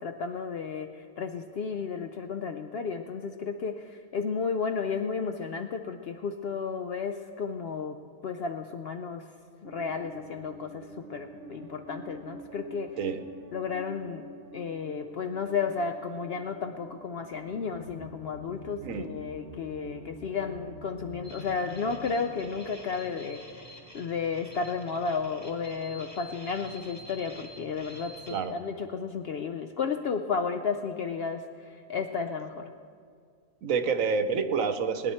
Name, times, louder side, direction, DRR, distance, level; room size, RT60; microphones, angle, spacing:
voice 1, 0.0-9.2 9.6-12.9 13.5-14.3 14.5-23.4 23.9-31.4 31.9-32.7, left 5 dB, 65° left, 6 dB, 0.6 m, -33 dB
sound 1, 9.6-22.7, equal, 50° right, 1.0 m, -46 dB
sound 2, 21.2-28.4, left 1 dB, 10° left, 2.0 m, -48 dB
voice 2, 33.6-35.1, right 5 dB, 70° right, 9 dB, 1.2 m, -28 dB
20.0 x 10.0 x 4.3 m, 2.1 s
omnidirectional pair, 1.5 m